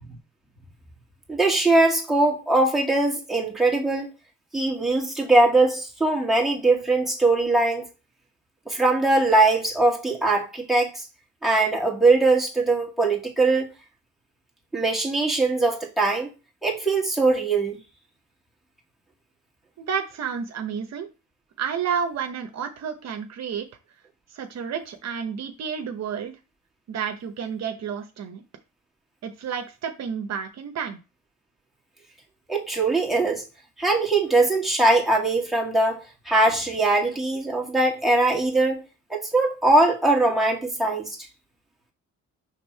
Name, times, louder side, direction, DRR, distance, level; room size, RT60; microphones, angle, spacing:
voice 1, 1.3-4.1 4.5-7.9 8.7-11.0 11.4-13.7 14.7-16.3 16.6-17.8 32.5-33.4 33.8-36.0 36.3-38.8 39.1-41.2, right 2 dB, ahead, 2.0 m, -21 dB
voice 2, 19.8-21.1 21.6-23.7 24.3-26.3 26.9-28.4 29.2-31.0, right 7 dB, 60° right, 0.9 m, -30 dB
5.3 x 3.4 x 5.5 m
cardioid pair, 90°, 30 cm